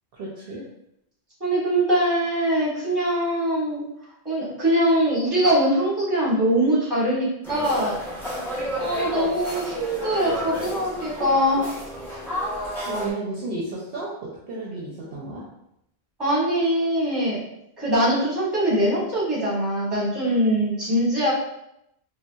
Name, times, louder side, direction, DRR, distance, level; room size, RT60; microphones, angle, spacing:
voice 1, 0.1-0.6 12.9-15.4, right 2 dB, 70° right, -4 dB, 0.7 m, -32 dB
voice 2, 1.4-3.8 4.2-8.0 8.8-11.7 16.2-17.4 17.8-21.3, right 1 dB, 20° right, -8 dB, 1.2 m, -22 dB
sound 1, 7.4-13.1, equal, ahead, 0.8 m, -31 dB
3.8 x 2.1 x 2.2 m, 0.81 s
omnidirectional pair, 1.1 m